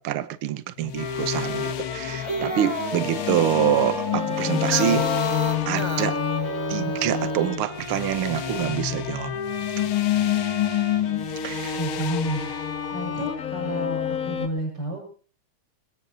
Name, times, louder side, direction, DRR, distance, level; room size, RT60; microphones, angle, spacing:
voice 1, 0.0-5.1 5.7-6.2 6.7-9.3 11.4-11.8, right 12 dB, 80° right, 1.2 m, -26 dB
sound 1, 0.8-14.5, left 13 dB, 60° left, 1.4 m, -29 dB
Bowed string instrument, 1.0-14.5, left 5 dB, 45° left, 1.1 m, -33 dB
sound 2, 2.1-7.6, equal, 10° right, 2.5 m, -31 dB
voice 2, 11.7-12.4 12.9-15.0, equal, 30° right, 6.9 m, -30 dB
22.5 x 21.5 x 2.8 m
omnidirectional pair, 3.6 m